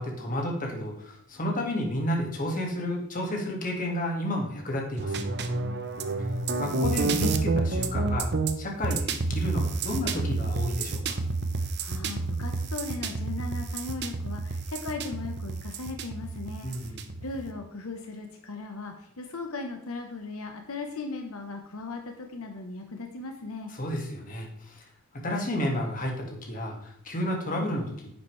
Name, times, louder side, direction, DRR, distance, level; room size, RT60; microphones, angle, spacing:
voice 1, 0.0-5.3 6.6-8.3 8.6-11.2 16.6-17.0 23.7-24.8 25.2-28.1, left 1 dB, 35° left, 0 dB, 1.9 m, -31 dB
sound 1, 5.0-17.5, right 3 dB, 50° right, 0.8 m, -29 dB
voice 2, 11.8-23.7, left 3 dB, 80° left, 4 dB, 1.0 m, -38 dB
10.0 x 7.2 x 3.2 m, 0.73 s
head